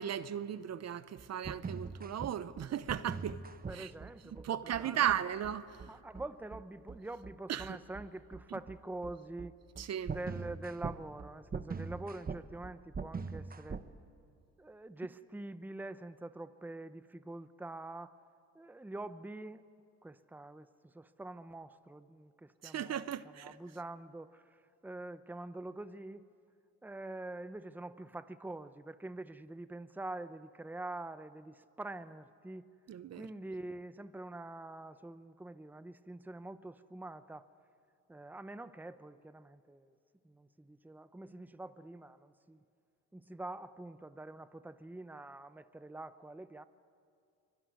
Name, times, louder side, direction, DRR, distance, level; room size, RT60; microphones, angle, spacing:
voice 1, 0.0-3.4 3.7-3.9 4.4-5.8 7.5-7.8 9.8-10.1 22.6-23.5 32.9-33.3, right 10 dB, 60° right, 0.9 m, -36 dB
sound 1, 1.2-13.9, right 5 dB, 30° right, 1.2 m, -42 dB
voice 2, 3.7-5.1 5.9-9.5 10.0-13.8 14.6-18.2 18.5-19.6 20.0-26.3 26.8-32.7 33.1-37.5 38.1-39.9 40.2-42.6 43.1-46.6, right 2 dB, 5° right, 0.8 m, -45 dB
24.5 x 21.5 x 9.4 m
cardioid pair, 90°, 30 cm